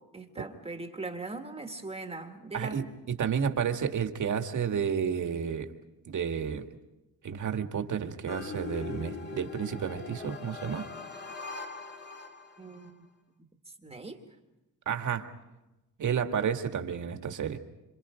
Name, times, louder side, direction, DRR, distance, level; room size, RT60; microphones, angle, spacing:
voice 1, 0.0-2.9 12.6-13.0 13.8-14.2, right 3 dB, 15° right, 4 dB, 1.8 m, -40 dB
voice 2, 3.2-5.7 6.1-6.6 7.2-10.9 14.9-15.3 16.0-17.6, right 7 dB, 55° right, 6 dB, 2.0 m, -31 dB
sound 1, 8.3-12.9, left 4 dB, 30° left, 2.2 m, -41 dB
27.5 x 27.0 x 5.1 m, 0.99 s
cardioid pair, 140°, 35 cm